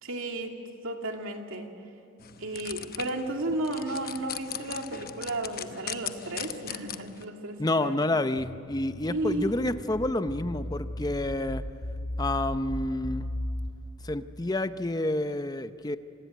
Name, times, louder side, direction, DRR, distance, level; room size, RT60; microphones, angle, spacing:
voice 1, 0.0-0.6 0.8-1.7 2.4-8.2 9.0-9.8, right 2 dB, 80° right, 3 dB, 2.4 m, -33 dB
sound 1, 2.2-7.2, left 9 dB, 45° left, 0.9 m, -39 dB
voice 2, 7.6-11.6 12.2-13.3 14.0-16.0, left 2 dB, 20° left, 11 dB, 0.7 m, -29 dB
sound 2, 8.4-13.7, left 1 dB, 65° left, 2.1 m, -36 dB
27.0 x 19.5 x 9.4 m, 2.7 s
head